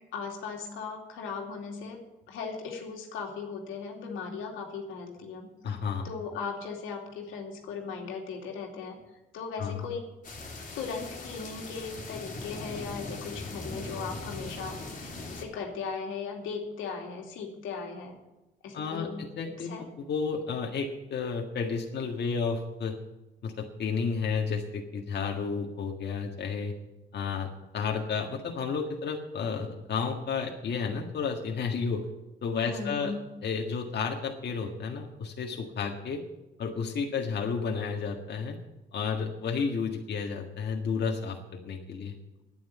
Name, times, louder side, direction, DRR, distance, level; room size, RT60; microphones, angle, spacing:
voice 1, 0.1-2.0 2.3-5.5 6.0-9.0 9.3-10.1 10.7-18.2 18.6-19.8 32.7-33.3, left 5 dB, 90° left, 2 dB, 2.5 m, -38 dB
voice 2, 5.6-6.1 9.6-9.8 18.7-23.0 23.4-26.7 27.1-27.5 27.7-32.1 32.4-33.1 33.4-36.2 36.6-38.6 38.9-42.1, left 5 dB, 55° left, 1 dB, 1.7 m, -32 dB
sound 1, 10.2-15.4, left 2 dB, 40° left, 3.0 m, -40 dB
9.6 x 9.5 x 9.3 m, 1.0 s
cardioid pair, 90°, 20 cm